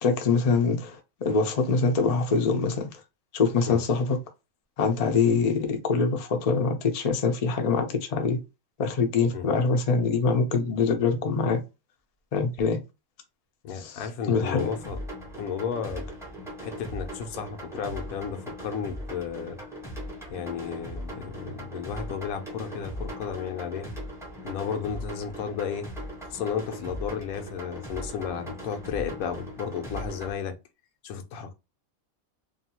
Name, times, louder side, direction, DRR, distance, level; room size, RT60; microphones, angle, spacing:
voice 1, 0.0-2.9 3.3-4.2 4.8-8.4 8.8-11.6 12.3-12.8 13.8-14.0 14.3-14.7, left 4 dB, 60° left, 0.4 m, -24 dB
voice 2, 13.6-15.0 15.4-16.0 16.6-19.6 20.3-23.9 24.4-25.9 26.2-30.6 31.0-31.5, left 7 dB, 85° left, 1.1 m, -33 dB
sound 1, 14.3-30.3, equal, 5° right, 0.5 m, -39 dB
2.7 x 2.2 x 2.8 m
omnidirectional pair, 1.5 m